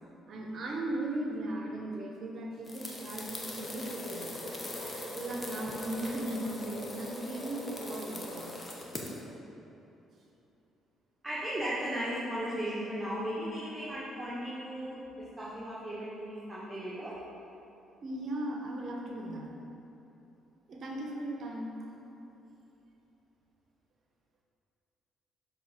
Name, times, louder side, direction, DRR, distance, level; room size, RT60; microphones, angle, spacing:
voice 1, 0.3-4.3 4.8-8.6 18.0-19.5 20.7-21.7, right 1 dB, 55° right, 0 dB, 0.8 m, -37 dB
sound 1, 2.6-9.2, left 1 dB, 25° left, 1.1 m, -40 dB
voice 2, 11.2-17.1, equal, 15° right, -8 dB, 1.5 m, -36 dB
6.8 x 3.9 x 4.4 m, 3.0 s
hypercardioid pair, 55°, 0 cm